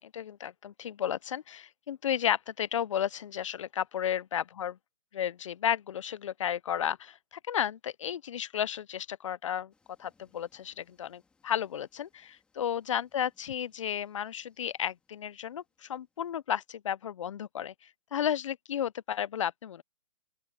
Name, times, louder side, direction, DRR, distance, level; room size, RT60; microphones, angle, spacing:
voice 1, 0.0-4.7 5.1-9.7 10.0-17.7 18.1-19.8, left 9 dB, 60° left, 0.5 m, -33 dB
sound 1, 9.7-16.6, left 4 dB, 5° left, 3.3 m, -74 dB
open air
hypercardioid pair, 165°, 18 cm